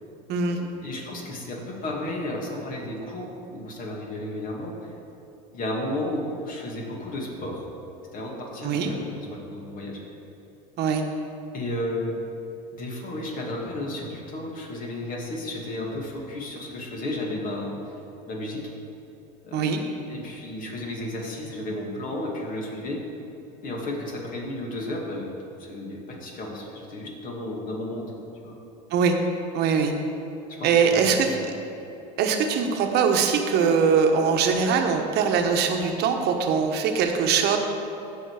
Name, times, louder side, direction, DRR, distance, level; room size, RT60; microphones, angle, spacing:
voice 1, 0.4-4.9 5.5-7.6 8.1-10.0 11.5-12.1 12.7-17.8 18.3-18.6 19.4-19.8 20.1-23.0 23.6-25.3 25.6-28.1 28.4-28.6 30.6-31.4, left 1 dB, 45° left, -1 dB, 2.4 m, -33 dB
voice 2, 29.5-29.9 30.6-31.3 32.2-37.6, right 6 dB, 55° right, 4 dB, 1.2 m, -22 dB
15.5 x 5.5 x 4.9 m, 3.0 s
cardioid pair, 125°, 20 cm